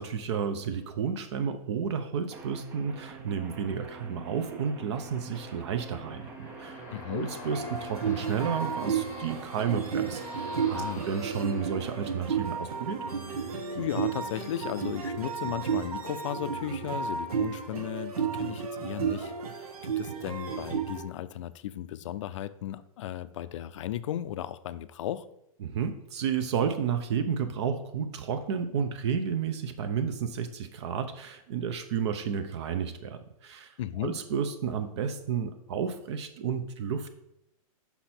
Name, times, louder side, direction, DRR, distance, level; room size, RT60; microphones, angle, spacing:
voice 1, 0.0-13.0 25.6-37.1, right 7 dB, 50° right, 9 dB, 0.6 m, -32 dB
sound 1, 2.3-15.3, right 4 dB, 10° right, 0.4 m, -47 dB
sound 2, 5.3-12.9, left 3 dB, 15° left, 0.8 m, -48 dB
voice 2, 6.9-7.3 10.7-11.0 13.8-25.3 33.8-34.2, left 12 dB, 55° left, 14 dB, 0.4 m, -36 dB
sound 3, 7.4-21.0, right 6 dB, 85° right, 1.1 m, -33 dB
5.9 x 5.5 x 4.3 m, 0.82 s
hypercardioid pair, 160°, 19 cm